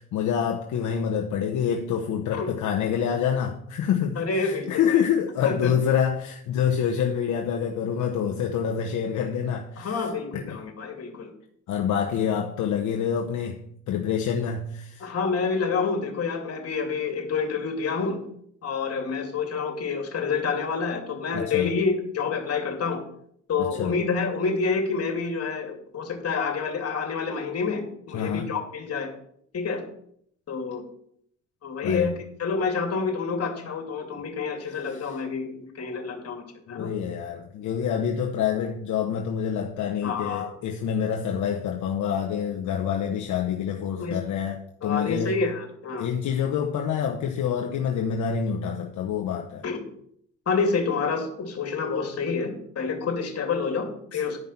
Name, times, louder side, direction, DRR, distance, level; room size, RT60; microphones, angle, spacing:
voice 1, 0.0-10.1 10.3-10.6 11.7-15.1 21.3-21.7 23.6-24.0 28.1-28.6 31.8-32.1 34.7-35.2 36.7-45.4 46.0-49.6 54.1-54.2, left 8 dB, 75° left, 1.0 m, -27 dB
voice 2, 4.2-5.0 5.4-5.7 9.8-11.3 15.0-18.2 18.6-23.0 23.5-29.1 29.5-29.8 30.5-30.8 31.6-32.1 32.4-36.9 40.0-40.5 44.0-44.2 44.8-46.1 49.6-49.9 50.5-54.4, left 5 dB, 55° left, 2.6 m, -28 dB
11.0 x 5.2 x 5.9 m
cardioid pair, 90°, 30 cm